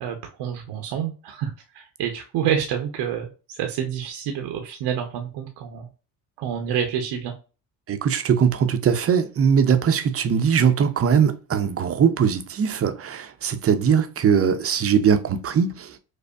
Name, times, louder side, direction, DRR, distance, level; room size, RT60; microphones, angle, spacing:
voice 1, 0.0-5.9 6.4-7.3, right 8 dB, 75° right, 0.7 m, -28 dB
voice 2, 7.9-16.0, right 7 dB, 35° right, 0.5 m, -20 dB
5.2 x 2.0 x 2.3 m
cardioid pair, 85°, 41 cm